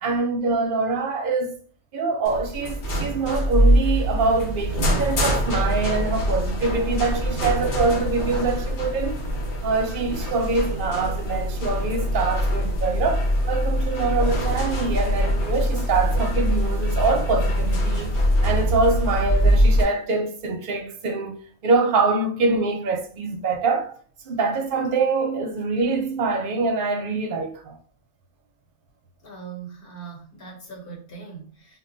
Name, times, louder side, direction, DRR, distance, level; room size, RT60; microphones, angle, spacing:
voice 1, 0.0-1.6 1.9-9.3 9.6-18.2 18.4-21.4 21.6-24.0 24.3-27.8, right 3 dB, 60° right, 0.7 m, -24 dB
sound 1, 2.2-19.8, equal, 85° left, 1.1 m, -23 dB
voice 2, 29.2-31.8, right 5 dB, 60° left, 1.1 m, -40 dB
2.3 x 2.1 x 3.7 m
omnidirectional pair, 1.1 m